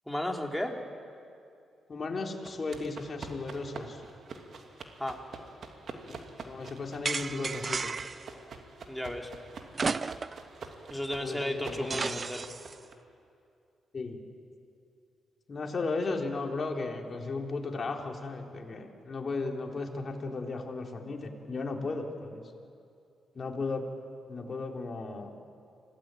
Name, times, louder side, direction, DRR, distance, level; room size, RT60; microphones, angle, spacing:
voice 1, 0.1-0.8 5.0-5.2 8.9-9.3 10.9-12.4, left 1 dB, 5° left, 2 dB, 3.4 m, -33 dB
voice 2, 1.9-4.0 6.4-7.9 11.2-12.1 13.9-14.2 15.5-22.4 23.3-23.8 24.3-25.3, left 3 dB, 45° left, 1 dB, 3.5 m, -35 dB
sound 1, 2.4-12.9, right 4 dB, 60° right, 2.8 m, -46 dB
sound 2, 7.0-8.3 9.7-10.5 10.8-10.9 11.9-12.7, right 4 dB, 40° right, 0.7 m, -33 dB
26.5 x 18.0 x 9.1 m, 2.5 s
supercardioid pair, 60°, 0 cm